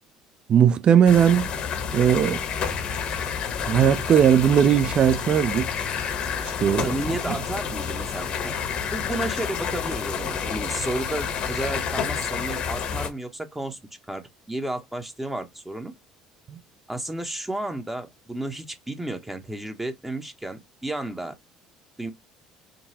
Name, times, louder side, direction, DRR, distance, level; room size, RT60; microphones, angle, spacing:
voice 1, 0.5-1.5 1.9-2.4 3.7-5.7 6.6-6.9 7.3-7.4, right 9 dB, 45° right, 0.6 m, -18 dB
sound 1, 1.0-13.1, left 7 dB, 55° left, 0.9 m, -29 dB
voice 2, 6.8-8.5 8.8-13.8 14.1-15.9 16.9-21.3 22.0-22.1, right 1 dB, 10° right, 0.9 m, -32 dB
3.8 x 2.3 x 2.8 m
hypercardioid pair, 70°, 2 cm